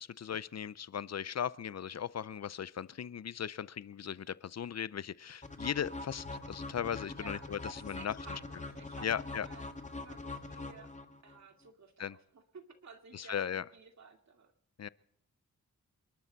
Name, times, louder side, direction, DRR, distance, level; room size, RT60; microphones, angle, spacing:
voice 1, 0.0-8.4 9.0-9.5 12.0-12.2 13.1-13.6 14.8-14.9, left 8 dB, 60° left, 19 dB, 0.6 m, -38 dB
sound 1, 5.4-11.4, left 2 dB, 25° left, 1.8 m, -43 dB
voice 2, 7.1-10.9 11.2-14.5, right 4 dB, 65° right, 5 dB, 2.4 m, -55 dB
28.5 x 12.0 x 4.1 m, 0.73 s
cardioid pair, 65°, 30 cm